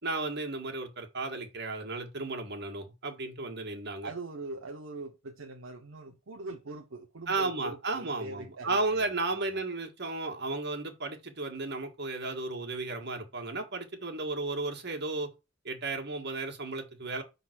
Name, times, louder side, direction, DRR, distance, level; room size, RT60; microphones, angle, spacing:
voice 1, 0.0-4.1 7.3-15.3 15.6-17.2, right 3 dB, 60° right, 1.8 m, -34 dB
voice 2, 4.0-9.6, right 2 dB, 80° right, 0.9 m, -42 dB
5.5 x 4.0 x 6.1 m
head